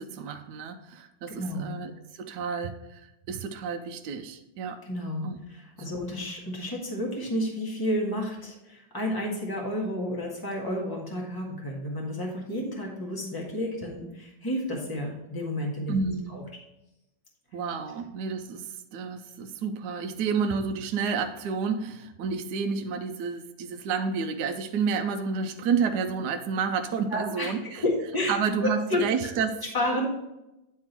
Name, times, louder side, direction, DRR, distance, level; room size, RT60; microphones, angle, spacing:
voice 1, 0.0-4.8 5.2-5.4 15.9-16.4 17.5-27.8 28.3-29.6, right 5 dB, 75° right, 6 dB, 1.2 m, -30 dB
voice 2, 1.4-1.7 4.8-5.2 5.5-16.0 16.3-16.4 27.1-28.3 28.9-29.0 29.7-30.0, left 1 dB, 15° left, -2 dB, 1.6 m, -31 dB
9.9 x 3.7 x 4.4 m, 0.92 s
omnidirectional pair, 1.9 m